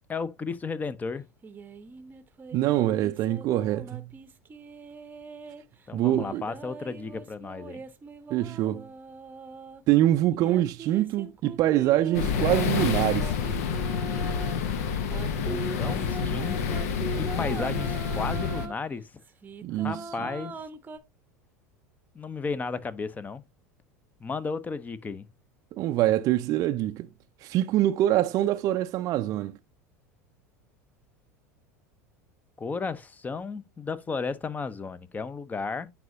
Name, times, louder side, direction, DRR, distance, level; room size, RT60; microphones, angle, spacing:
voice 1, 0.1-1.3 5.9-7.8 15.4-16.8 17.2-19.2 19.7-20.6 22.1-23.4 24.2-25.3 32.6-35.9, left 4 dB, 20° left, 0.7 m, -34 dB
sound 1, 1.4-5.6 6.1-9.8 10.3-14.6 15.1-18.7 19.2-21.0, right 5 dB, 20° right, 0.8 m, -41 dB
voice 2, 2.5-4.1 5.9-6.4 8.3-8.8 9.9-13.3 19.6-20.0 25.7-27.1 27.4-29.6, right 13 dB, 45° right, 0.4 m, -24 dB
sound 2, 12.1-18.7, left 6 dB, 70° left, 0.9 m, -28 dB
9.3 x 4.8 x 2.7 m
hypercardioid pair, 80°, 8 cm